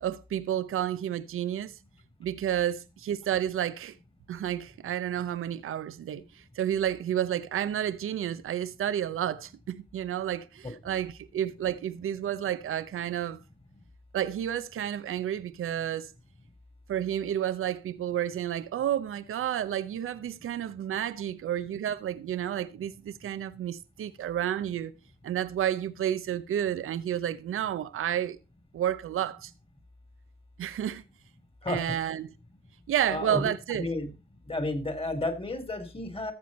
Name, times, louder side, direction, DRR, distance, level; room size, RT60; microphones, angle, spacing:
voice 1, 0.0-1.8 2.2-4.0 4.3-13.4 14.1-16.1 16.9-24.9 25.2-28.4 28.7-29.5 30.6-31.0 31.7-32.3 32.9-33.9, right 10 dB, 85° right, 0.7 m, -31 dB
voice 2, 10.6-11.0 31.6-32.0 33.1-34.1 34.5-36.3, left 2 dB, 25° left, 3.4 m, -32 dB
14.0 x 7.0 x 4.2 m
cardioid pair, 50°, 21 cm